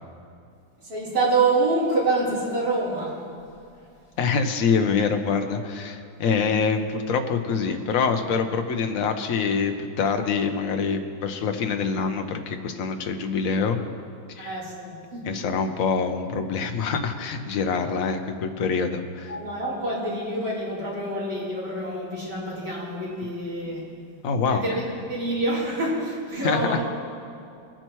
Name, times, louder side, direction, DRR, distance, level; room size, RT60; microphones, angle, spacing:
voice 1, 0.8-3.2 14.4-15.3 19.3-23.9 24.5-26.8, right 2 dB, 45° right, -9 dB, 4.0 m, -26 dB
voice 2, 4.2-13.8 14.4-14.6 15.2-19.3 24.2-24.7 26.4-26.8, left 5 dB, 55° left, 6 dB, 1.0 m, -25 dB
20.5 x 8.9 x 3.1 m, 2.4 s
omnidirectional pair, 2.1 m